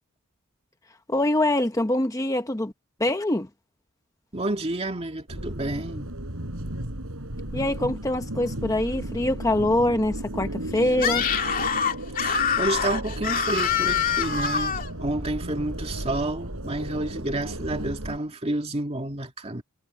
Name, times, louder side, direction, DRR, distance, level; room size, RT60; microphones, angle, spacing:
voice 1, 1.1-2.7 3.0-3.5 7.5-11.2, left 1 dB, 15° left, 0.8 m, -24 dB
voice 2, 4.3-6.1 12.2-14.7 15.0-19.6, right 1 dB, 30° right, 2.2 m, -30 dB
sound 1, 5.3-18.2, right 1 dB, 90° right, 4.2 m, -34 dB
Screaming, 10.9-14.9, left 7 dB, 40° left, 2.4 m, -25 dB
head